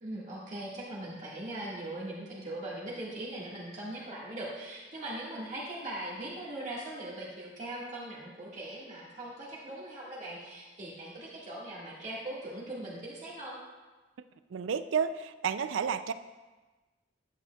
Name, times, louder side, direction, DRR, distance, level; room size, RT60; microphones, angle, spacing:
voice 1, 0.0-13.6, right 1 dB, 40° right, -7 dB, 1.7 m, -40 dB
voice 2, 14.5-16.1, right 7 dB, 85° right, 12 dB, 0.4 m, -31 dB
10.5 x 8.9 x 2.3 m, 1.2 s
head